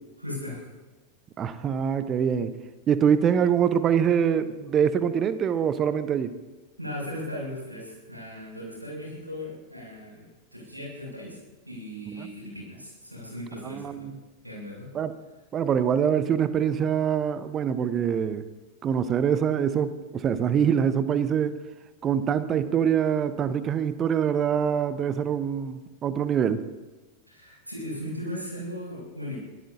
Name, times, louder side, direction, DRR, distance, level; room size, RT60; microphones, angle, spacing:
voice 1, 0.2-0.6 6.8-10.3 10.5-11.4 11.7-14.1 14.4-14.9 27.3-29.4, left 1 dB, 85° right, -4 dB, 7.1 m, -37 dB
voice 2, 1.4-2.5 2.9-6.3 12.2-12.3 13.6-14.1 14.9-15.1 15.5-18.4 18.8-21.6 22.0-26.6, right 8 dB, 25° right, 13 dB, 0.9 m, -24 dB
24.5 x 17.0 x 2.8 m, 1.1 s
figure-of-eight pair, 90°, 0 cm